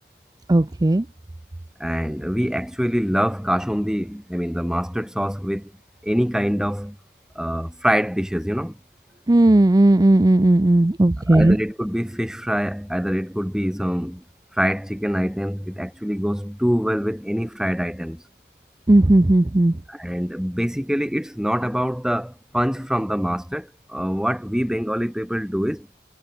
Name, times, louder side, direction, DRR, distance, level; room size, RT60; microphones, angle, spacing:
voice 1, 0.5-1.1 9.3-11.6 18.9-19.8, right 1 dB, 20° right, 0.5 m, -15 dB
voice 2, 1.8-5.7 6.0-7.0 7.3-8.8 11.3-14.2 14.6-18.2 19.9-25.9, equal, 5° right, 3.2 m, -24 dB
head